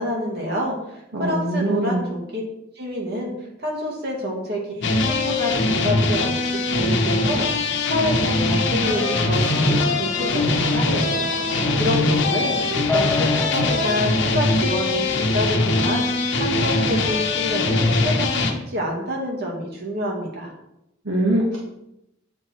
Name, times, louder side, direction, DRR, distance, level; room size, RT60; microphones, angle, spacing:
voice 1, 0.0-2.4 2.8-3.3 3.6-16.1 16.4-20.5, equal, 55° right, -2 dB, 2.2 m, -28 dB
voice 2, 1.1-2.0 21.0-21.6, right 1 dB, 80° right, -3 dB, 1.5 m, -22 dB
sound 1, 4.8-18.5, left 3 dB, 60° left, 1.0 m, -21 dB
sound 2, 8.9-13.9, left 3 dB, 5° left, 1.0 m, -30 dB
8.6 x 4.7 x 4.4 m, 0.85 s
head